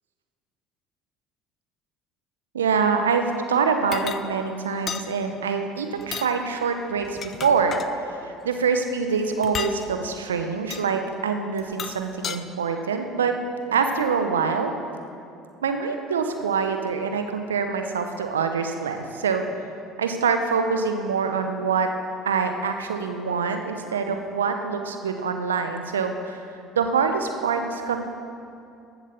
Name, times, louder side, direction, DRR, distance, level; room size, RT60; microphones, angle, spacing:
voice 1, 2.5-7.8 8.2-13.3 13.7-14.7 15.6-19.4 20.0-21.9 22.2-26.5 26.8-28.0, right 5 dB, 85° right, 6 dB, 0.8 m, -25 dB
sound 1, 3.9-4.2 4.9-5.1 6.0-6.3 7.0-7.9 9.4-9.8 10.7-10.9 11.6-12.4, left 8 dB, 45° left, 0.6 m, -33 dB
14.0 x 8.2 x 7.0 m, 2.5 s
hypercardioid pair, 65°, 0 cm